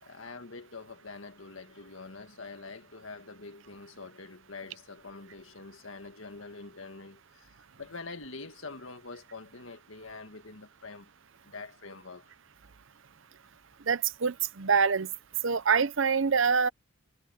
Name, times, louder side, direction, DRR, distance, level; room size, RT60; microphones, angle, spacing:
voice 1, 0.0-11.1 11.4-12.3, left 3 dB, 65° left, 1.8 m, -45 dB
voice 2, 13.9-15.1 15.4-16.7, right 5 dB, 60° right, 0.7 m, -25 dB
head